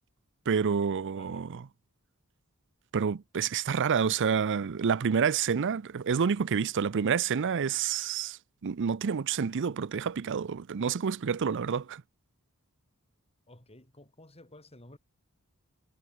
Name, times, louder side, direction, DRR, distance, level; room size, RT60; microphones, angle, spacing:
voice 1, 0.5-1.6 2.9-12.0, right 6 dB, 55° right, 0.5 m, -28 dB
voice 2, 1.2-1.5 13.5-15.0, left 1 dB, 25° left, 5.1 m, -53 dB
head